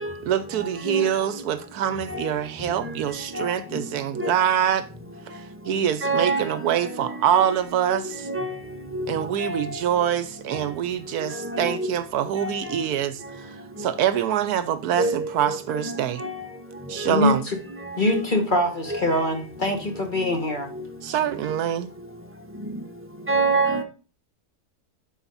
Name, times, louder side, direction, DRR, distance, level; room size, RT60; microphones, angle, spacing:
voice 1, 0.2-4.9 5.3-8.3 9.1-16.2 16.9-17.4 21.0-21.9, right 10 dB, 75° right, 1.1 m, -25 dB
voice 2, 3.3-3.8 4.2-4.3 6.0-6.5 7.3-7.5 7.9-8.0 8.2-8.5 8.9-9.6 10.5-10.6 11.3-11.9 12.4-12.5 15.0-16.3 17.0-17.1 18.0-18.2 18.9-19.2 20.2-20.3 20.7-20.8 23.3-23.8, right 2 dB, 10° right, 1.2 m, -27 dB
voice 3, 17.1-17.6 18.0-20.7, left 1 dB, 30° left, 1.6 m, -23 dB
11.5 x 4.6 x 4.0 m
omnidirectional pair, 1.7 m